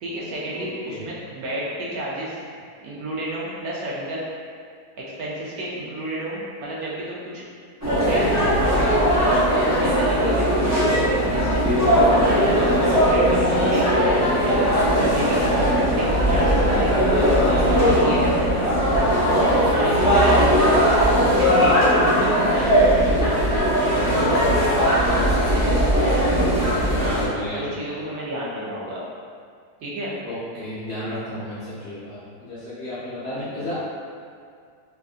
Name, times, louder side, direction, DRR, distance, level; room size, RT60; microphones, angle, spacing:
voice 1, 0.0-2.4 2.8-4.2 5.0-7.5 7.9-11.6 12.2-14.6 15.0-17.0 17.7-18.9 19.4-23.6 27.0-27.2 27.5-29.0 29.8-30.1 33.4-33.7, right 1 dB, 70° right, -6 dB, 1.1 m, -31 dB
voice 2, 0.5-1.0 15.5-15.9 19.9-21.5 25.1-26.5 26.8-27.8 30.2-33.8, left 1 dB, 55° left, -11 dB, 0.8 m, -34 dB
sound 1, 7.8-27.3, equal, 15° right, 0.5 m, -19 dB
3.5 x 2.5 x 2.4 m, 2.3 s
omnidirectional pair, 1.7 m